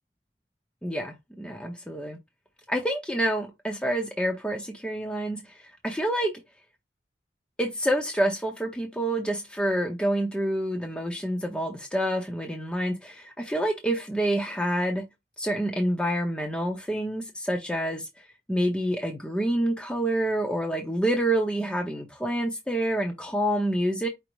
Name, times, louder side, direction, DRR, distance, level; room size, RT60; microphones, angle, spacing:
voice 1, 0.8-2.2 2.7-6.4 7.6-15.0 15.4-24.1, right 1 dB, 5° left, 0.6 m, -28 dB
5.2 x 2.0 x 4.5 m
head